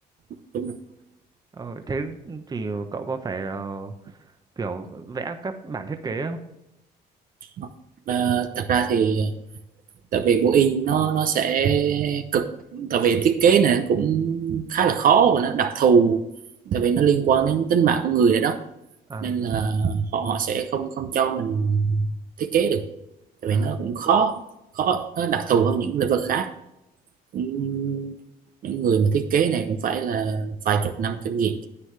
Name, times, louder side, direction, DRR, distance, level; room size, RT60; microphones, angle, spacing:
voice 1, 1.5-4.2 4.6-6.4 19.1-19.3 23.5-23.8, right 4 dB, 25° right, 8 dB, 0.9 m, -32 dB
voice 2, 8.1-9.3 10.1-16.2 16.7-18.6 19.2-22.1 22.4-22.9 23.4-24.4 24.7-26.5 27.3-28.2 28.6-31.7, right 7 dB, 55° right, 7 dB, 0.8 m, -22 dB
9.8 x 9.2 x 3.3 m, 0.87 s
cardioid pair, 110°, 17 cm